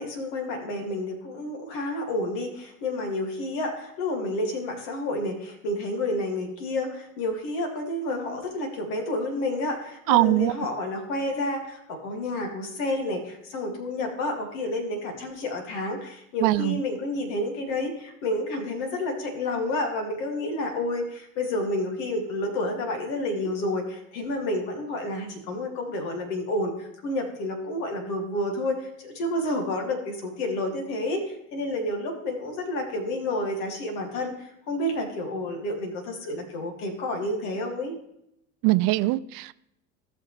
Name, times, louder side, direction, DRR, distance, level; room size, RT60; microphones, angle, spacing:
voice 1, 0.0-37.9, left 1 dB, 65° left, 2.4 m, -30 dB
voice 2, 10.1-10.5 16.4-16.8 38.6-39.5, right 19 dB, 50° right, 0.5 m, -21 dB
15.5 x 6.3 x 3.2 m
hypercardioid pair, 80°, 44 cm